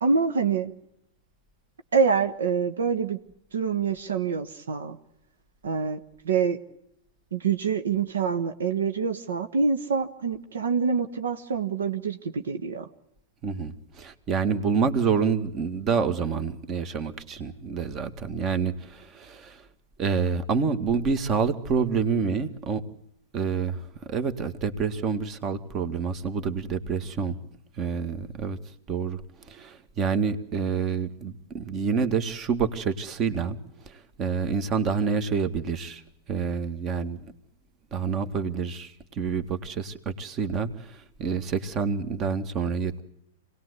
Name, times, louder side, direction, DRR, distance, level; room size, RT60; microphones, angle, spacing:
voice 1, 0.0-0.7 1.9-3.2 3.5-5.0 5.6-6.6 7.3-12.8, right 5 dB, 80° right, 8 dB, 1.3 m, -26 dB
voice 2, 13.4-19.6 20.0-22.8 23.3-23.8 24.1-27.4 27.8-28.6 28.9-29.2 29.5-33.6 34.2-36.0 36.3-37.3 37.9-43.0, right 6 dB, 35° right, 10 dB, 2.0 m, -27 dB
26.5 x 19.0 x 8.3 m, 0.77 s
hypercardioid pair, 110°, 0 cm